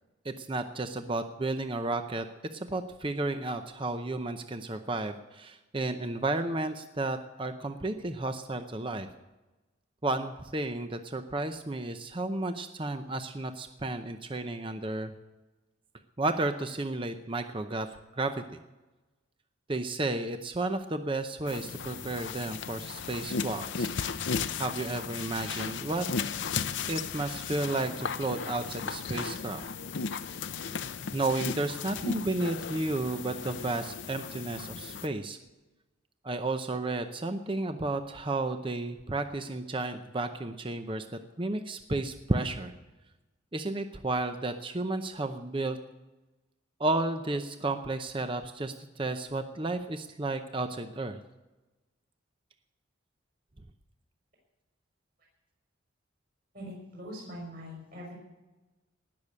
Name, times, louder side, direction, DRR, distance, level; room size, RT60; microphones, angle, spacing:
voice 1, 0.2-2.2 2.5-9.1 10.0-15.1 16.2-17.9 18.1-18.6 19.7-23.9 24.6-26.0 26.9-29.7 31.1-35.4 36.2-41.0 41.4-42.7 43.5-45.8 46.8-51.2, right 2 dB, 25° right, 8 dB, 0.7 m, -32 dB
sound 1, 21.5-35.1, left 5 dB, 65° left, 0.7 m, -35 dB
voice 2, 56.5-58.1, equal, 50° right, -2 dB, 6.0 m, -42 dB
19.0 x 6.7 x 8.7 m, 1.1 s
head